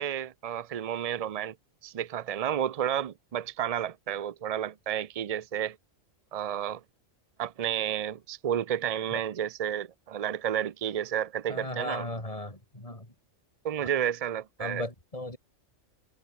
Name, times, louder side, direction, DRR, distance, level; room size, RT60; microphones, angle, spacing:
voice 1, 0.0-1.6 1.8-5.8 6.3-6.8 7.4-12.1 13.6-14.8, right 9 dB, 65° right, 0.3 m, -31 dB
voice 2, 11.5-13.1 14.6-15.4, left 1 dB, 25° left, 5.4 m, -36 dB
omnidirectional pair, 1.3 m